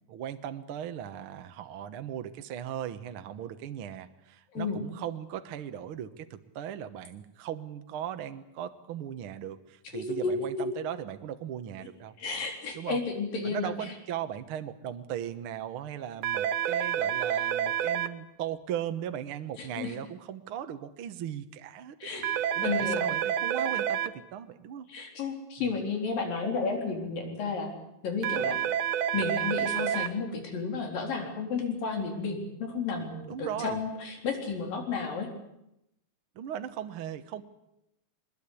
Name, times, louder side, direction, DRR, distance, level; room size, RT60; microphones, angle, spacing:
voice 1, 0.1-12.1 12.7-13.0 13.4-22.1 22.6-24.9 25.6-25.7 33.3-33.8 36.3-37.4, right 10 dB, 60° right, 9 dB, 1.5 m, -38 dB
voice 2, 9.9-10.5 12.2-13.9 19.6-19.9 22.0-22.3 22.6-23.0 24.9-27.7 28.0-28.6 29.1-35.3, left 4 dB, 80° left, 3 dB, 5.6 m, -32 dB
sound 1, 16.2-18.1 22.2-24.1 28.2-30.1, right 9 dB, 85° right, 2.7 m, -28 dB
23.0 x 21.0 x 8.5 m, 0.83 s
omnidirectional pair, 3.9 m